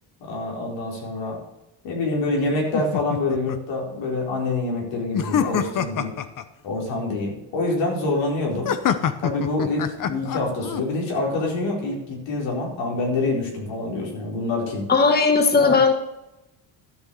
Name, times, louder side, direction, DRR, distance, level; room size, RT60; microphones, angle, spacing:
voice 1, 0.3-1.4 1.8-6.1 6.6-8.7 9.2-14.9 15.6-15.8, left 2 dB, 80° left, -1 dB, 4.5 m, -26 dB
sound 1, 2.7-3.6 5.1-6.4 8.6-10.8, left 9 dB, 45° left, 0.9 m, -25 dB
voice 2, 14.9-15.9, left 4 dB, 20° left, 5 dB, 1.3 m, -17 dB
12.5 x 6.3 x 7.0 m, 0.93 s
cardioid pair, 120°, 44 cm